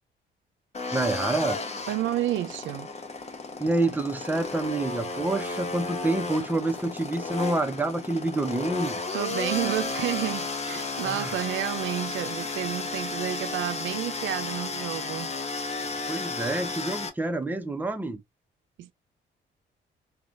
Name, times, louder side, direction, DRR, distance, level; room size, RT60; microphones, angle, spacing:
sound 1, 0.7-17.1, left 3 dB, 35° left, 0.9 m, -33 dB
voice 1, 0.9-1.6 3.6-9.0 11.0-11.4 16.1-18.2, right 2 dB, 10° right, 0.7 m, -28 dB
voice 2, 1.9-2.9 9.1-15.3 18.8-18.9, right 13 dB, 75° right, 0.5 m, -30 dB
3.5 x 2.3 x 2.4 m
cardioid pair, 90°, 20 cm